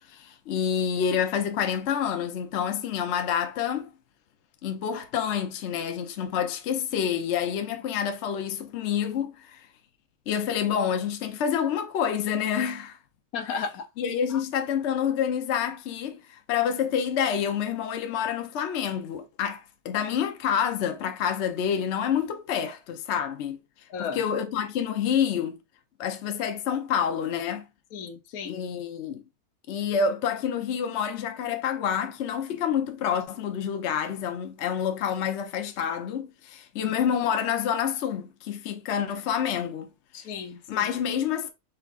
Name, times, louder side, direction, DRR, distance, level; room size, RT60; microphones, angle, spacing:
voice 1, 0.1-3.9 4.6-9.7 10.3-13.0 14.0-23.6 24.0-25.6 26.0-27.7 28.4-29.2 29.7-39.9 40.7-41.5, left 8 dB, 60° left, 0.9 m, -28 dB
voice 2, 13.3-13.8 23.9-24.2 27.9-28.6 36.8-37.0 40.1-40.9, left 6 dB, 80° left, 1.1 m, -34 dB
4.6 x 3.6 x 2.4 m
omnidirectional pair, 1.5 m